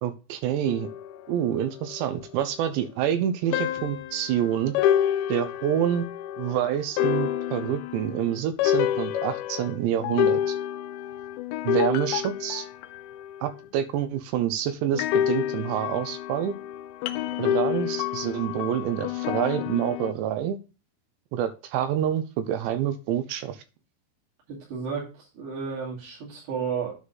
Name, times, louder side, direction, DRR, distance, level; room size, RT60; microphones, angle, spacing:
voice 1, 0.0-0.9 1.3-4.7 5.3-6.1 6.4-10.6 11.6-12.7 13.4-16.5 17.4-20.6 21.3-23.6, right 10 dB, 80° right, 11 dB, 2.8 m, -27 dB
sound 1, 0.7-2.2 3.5-13.5 14.9-20.1, left 11 dB, 85° left, 2.8 m, -28 dB
voice 2, 24.5-27.0, right 6 dB, 65° right, -6 dB, 4.6 m, -32 dB
9.5 x 3.8 x 5.7 m, 0.32 s
omnidirectional pair, 5.2 m